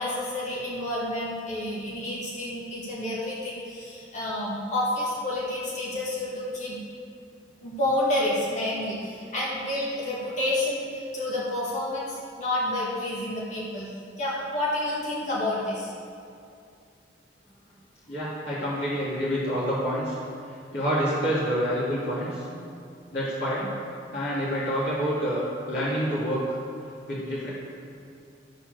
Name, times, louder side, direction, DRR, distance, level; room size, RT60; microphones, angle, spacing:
voice 1, 0.0-6.8 7.6-13.9 14.2-15.9, left 1 dB, 40° left, -6 dB, 1.8 m, -29 dB
voice 2, 18.1-20.2 20.5-22.5 23.1-23.7 24.1-26.6 27.1-27.5, equal, 60° left, -10 dB, 2.8 m, -27 dB
13.0 x 4.5 x 6.7 m, 2.4 s
head